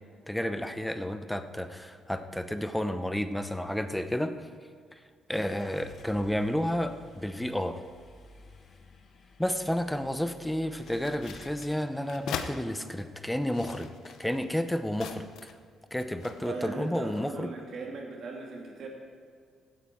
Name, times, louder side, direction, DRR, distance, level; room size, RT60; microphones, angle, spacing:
voice 1, 0.3-4.5 4.9-5.0 5.3-7.7 9.4-15.5 15.9-17.5, left 1 dB, 5° left, 9 dB, 0.8 m, -31 dB
Car / Engine starting, 5.3-11.8, left 3 dB, 50° left, 1.6 m, -54 dB
sound 1, 10.7-12.5 13.3-15.7 16.0-16.7, left 8 dB, 80° left, 0.8 m, -41 dB
voice 2, 16.4-18.9, right 3 dB, 65° right, -1 dB, 2.8 m, -39 dB
16.0 x 9.1 x 4.6 m, 2.1 s
cardioid pair, 90°, 0 cm